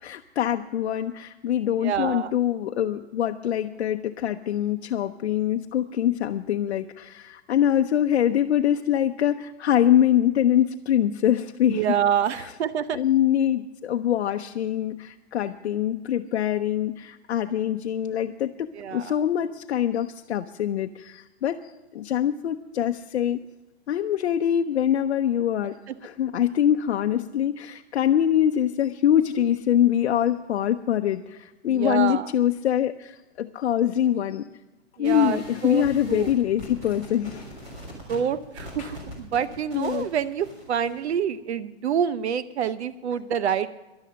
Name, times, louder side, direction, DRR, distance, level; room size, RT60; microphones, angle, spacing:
voice 1, 0.0-12.0 12.3-12.5 12.9-23.4 23.9-34.5 35.0-37.6 38.8-38.9 39.7-40.1, left 10 dB, 80° left, 5 dB, 0.7 m, -24 dB
voice 2, 1.8-2.3 11.7-13.0 18.7-19.1 31.6-32.3 35.0-36.3 38.1-43.7, right 8 dB, 85° right, 14 dB, 0.8 m, -27 dB
sound 1, 35.0-41.2, left 1 dB, 20° right, 3.6 m, -42 dB
12.5 x 11.5 x 6.3 m, 1.1 s
hypercardioid pair, 175°, 32 cm